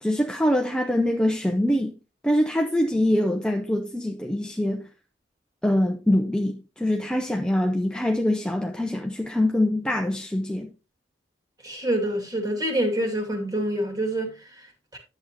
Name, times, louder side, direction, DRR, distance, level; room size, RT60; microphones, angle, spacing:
voice 1, 0.0-1.9 2.2-4.9 5.6-10.7, left 1 dB, 5° left, 0.6 m, -24 dB
voice 2, 11.6-15.0, right 1 dB, 20° right, 2.4 m, -27 dB
10.5 x 7.8 x 2.9 m
head